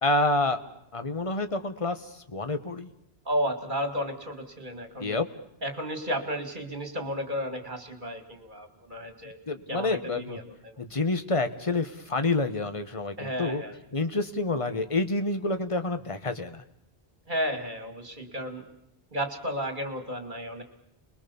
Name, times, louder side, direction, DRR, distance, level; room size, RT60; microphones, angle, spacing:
voice 1, 0.0-0.6 0.9-2.0 2.3-2.9 5.0-5.3 9.5-10.4 10.8-13.6 13.9-16.6, left 2 dB, 30° left, 9 dB, 1.4 m, -28 dB
voice 2, 3.3-5.2 5.6-9.4 9.7-10.8 13.2-13.8 17.3-18.7 19.1-20.6, equal, 50° right, 7 dB, 2.6 m, -33 dB
29.5 x 21.5 x 7.1 m, 0.75 s
omnidirectional pair, 1.1 m